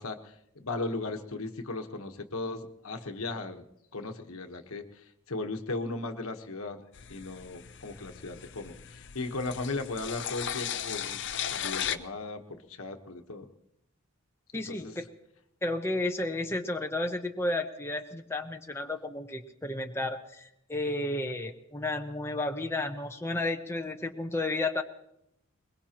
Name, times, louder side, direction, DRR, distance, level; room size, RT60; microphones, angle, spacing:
voice 1, 0.0-3.6 3.9-6.8 7.1-11.2 11.5-13.5 14.5-15.0, left 3 dB, 75° left, 6 dB, 1.2 m, -37 dB
sound 1, 6.9-12.0, left 9 dB, 55° left, 0.7 m, -37 dB
voice 2, 14.5-15.1 15.6-24.8, left 2 dB, 10° left, 4 dB, 0.7 m, -32 dB
22.5 x 21.5 x 2.9 m, 0.78 s
head